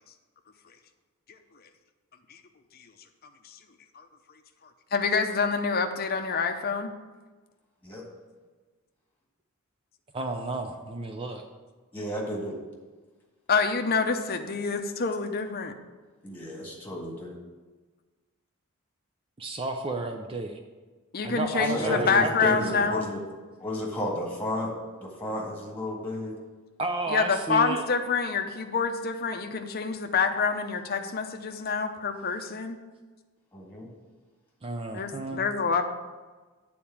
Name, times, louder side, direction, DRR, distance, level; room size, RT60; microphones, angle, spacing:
voice 1, 4.9-6.9 13.5-15.7 21.1-23.1 27.1-32.8 34.9-35.8, left 5 dB, 45° left, 6 dB, 0.7 m, -27 dB
voice 2, 10.1-11.4 19.4-20.6 21.2-22.9 26.8-27.8 34.6-35.4, right 2 dB, 25° right, 4 dB, 0.5 m, -32 dB
voice 3, 11.9-12.6 16.2-17.4 21.6-23.2 23.6-24.7 25.0-26.4 33.5-33.9, left 1 dB, 10° left, -2 dB, 1.8 m, -32 dB
8.6 x 4.3 x 7.2 m, 1.3 s
head